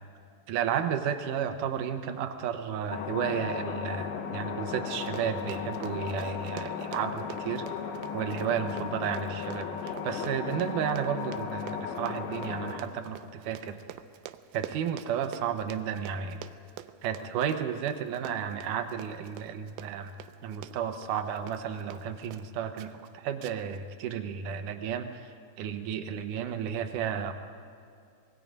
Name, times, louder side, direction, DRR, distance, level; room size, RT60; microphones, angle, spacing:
voice 1, 0.5-7.7 8.1-13.8 14.5-16.4 17.0-20.2 20.4-25.3 25.6-27.3, right 8 dB, 70° right, 7 dB, 2.3 m, -32 dB
sound 1, 2.9-12.8, left 7 dB, 85° left, 3.2 m, -36 dB
Run, 4.9-22.5 22.8-23.1 23.4-23.8 24.1-24.2, right 12 dB, 90° right, 2.5 m, -47 dB
25.5 x 21.5 x 5.3 m, 2.3 s
omnidirectional pair, 4.3 m